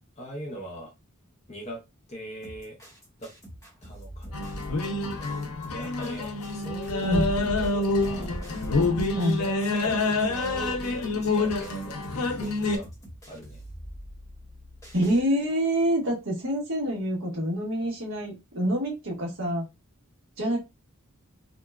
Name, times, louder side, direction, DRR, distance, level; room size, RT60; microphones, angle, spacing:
voice 1, 0.2-0.9 1.5-1.8 2.1-2.8 3.2-3.3 3.8-8.3 9.4-12.9 13.3-13.6, right 1 dB, 30° left, 0.8 m, -41 dB
sound 1, 2.4-15.2, equal, 15° left, 1.1 m, -45 dB
sound 2, 4.3-12.8, left 2 dB, 85° left, 0.6 m, -27 dB
voice 2, 7.0-7.3 9.1-9.4 14.9-19.6 20.4-20.6, equal, 60° right, 1.3 m, -26 dB
sound 3, 8.0-10.0, right 1 dB, 30° right, 0.5 m, -45 dB
2.8 x 2.2 x 2.3 m
head